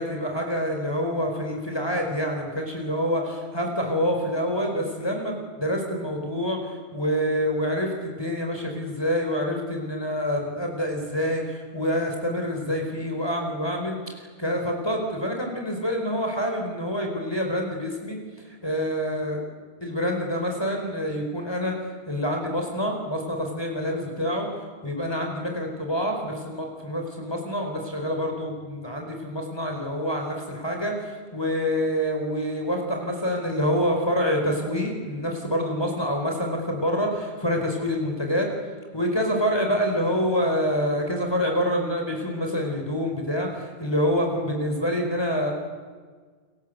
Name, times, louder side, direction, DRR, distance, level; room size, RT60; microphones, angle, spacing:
voice 1, 0.0-7.9 8.2-18.2 18.4-19.4 19.8-21.7 22.1-24.5 24.8-38.5 38.9-45.5, equal, 25° left, 1 dB, 4.8 m, -27 dB
29.5 x 24.0 x 8.2 m, 1.5 s
omnidirectional pair, 1.1 m